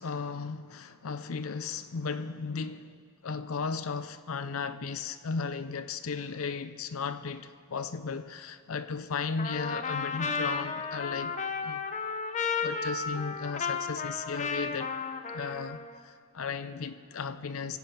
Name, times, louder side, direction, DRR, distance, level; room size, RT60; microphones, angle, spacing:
voice 1, 0.0-2.9 3.2-11.9 12.6-15.0 15.3-17.8, left 5 dB, 65° left, 0.6 m, -35 dB
Trumpet, 9.4-16.0, left 5 dB, 35° left, 0.8 m, -33 dB
23.5 x 8.5 x 5.9 m
head